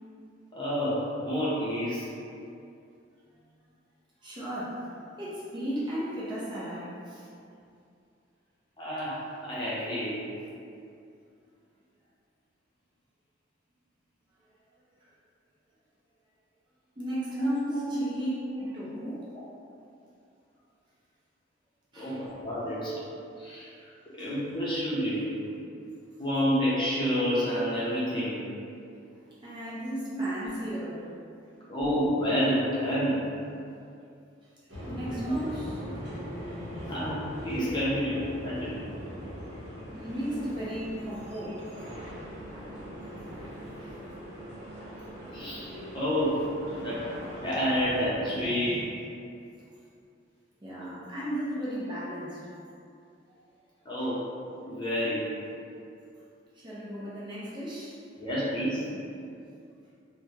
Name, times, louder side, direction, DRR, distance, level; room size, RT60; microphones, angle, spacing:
voice 1, 0.5-2.1 8.8-10.2 17.3-18.0 18.5-18.6 21.9-23.0 23.4-23.7 24.1-25.3 26.2-28.4 30.1-30.2 31.7-33.2 35.1-35.3 36.9-38.8 40.3-40.4 45.3-46.5 46.8-47.0 47.4-48.8 53.8-54.3 54.6-55.3 58.2-58.9, equal, 25° left, -9 dB, 0.7 m, -29 dB
voice 2, 4.2-4.9 5.2-7.3 17.0-18.3 18.6-19.3 21.9-22.2 24.2-24.3 29.4-31.1 34.9-35.8 39.9-41.7 43.8-43.9 48.3-48.9 50.6-52.4 53.3-53.4 56.5-58.0, equal, 25° right, -9 dB, 0.5 m, -36 dB
sound 1, 34.7-48.1, equal, 65° right, 0.9 m, -41 dB
3.2 x 2.1 x 2.8 m, 2.5 s
head